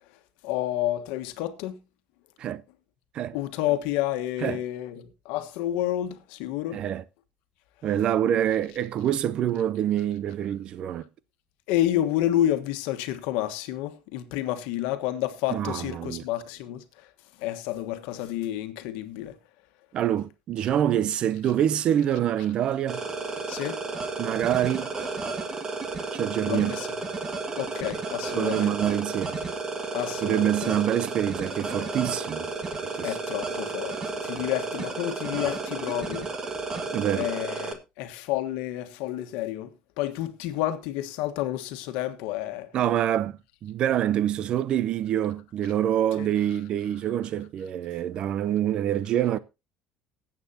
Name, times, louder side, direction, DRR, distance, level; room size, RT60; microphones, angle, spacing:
voice 1, 0.4-1.8 3.3-6.8 11.7-17.1 17.4-19.3 23.5-23.8 26.5-26.9 27.6-28.7 29.9-30.7 33.0-36.3 37.1-39.7 40.0-42.7 46.2-46.3, left 13 dB, 85° left, 1.3 m, -30 dB
voice 2, 6.7-7.0 7.8-11.0 15.5-16.2 19.9-23.0 24.2-24.9 26.1-26.8 28.4-29.4 30.2-32.5 32.8-33.1 36.9-37.3 42.7-49.4, right 10 dB, 45° right, 0.6 m, -26 dB
sound 1, 22.9-37.7, right 3 dB, 30° right, 1.7 m, -32 dB
19.5 x 8.3 x 2.8 m
cardioid pair, 135°, 2 cm